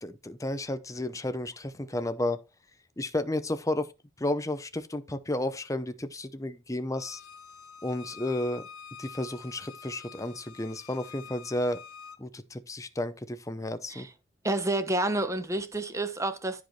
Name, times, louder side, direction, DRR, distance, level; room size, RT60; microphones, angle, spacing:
voice 1, 0.0-2.4 3.0-3.9 4.2-7.2 7.8-8.7 9.0-11.8 12.2-14.1, left 1 dB, 15° left, 0.7 m, -32 dB
Bowed string instrument, 6.9-12.2, left 6 dB, 80° left, 0.7 m, -47 dB
voice 2, 14.4-16.6, right 2 dB, 15° right, 1.0 m, -29 dB
14.5 x 5.2 x 3.2 m
head